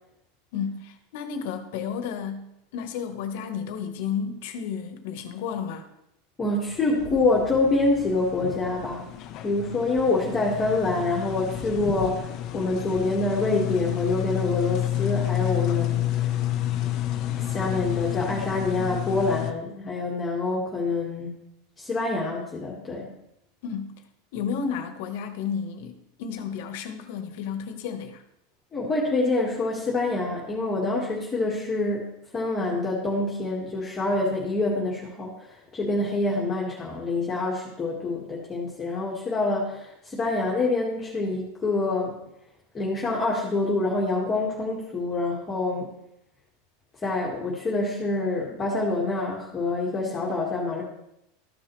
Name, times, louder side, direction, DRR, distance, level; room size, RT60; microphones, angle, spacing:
voice 1, 0.5-2.4 2.7-5.9 23.6-23.9 24.3-28.2, left 7 dB, 65° left, 7 dB, 1.2 m, -32 dB
voice 2, 6.4-9.1 9.4-16.3 17.5-21.3 21.8-23.1 28.7-42.2 42.7-45.9 47.0-50.8, left 2 dB, 15° left, -4 dB, 1.7 m, -26 dB
sound 1, 6.7-19.5, left 13 dB, 40° left, 0.7 m, -30 dB
13.5 x 6.0 x 3.2 m, 0.82 s
supercardioid pair, 150°, 0 cm